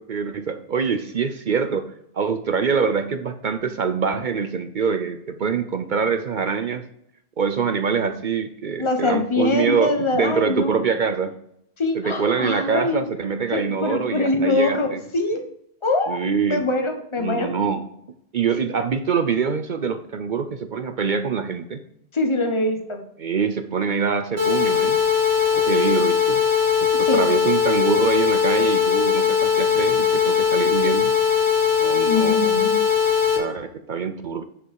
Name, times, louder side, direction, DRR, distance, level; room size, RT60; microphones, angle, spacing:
voice 1, 0.0-6.8 7.4-11.3 11.9-15.0 16.1-16.6 17.2-17.8 18.3-21.8 23.2-25.0 25.5-26.4 26.8-31.1 31.8-32.4 33.4-34.4, right 6 dB, 55° right, 9 dB, 0.8 m, -24 dB
voice 2, 8.8-10.7 11.8-13.0 13.5-14.9 15.1-15.4 15.8-16.2 16.5-17.5 22.1-23.0 25.5-25.6 27.0-27.2 32.1-32.8, left 2 dB, 30° left, 6 dB, 1.2 m, -23 dB
sound 1, 24.4-33.4, left 7 dB, 85° right, 2.6 m, -20 dB
10.0 x 5.4 x 4.7 m, 0.75 s
omnidirectional pair, 1.0 m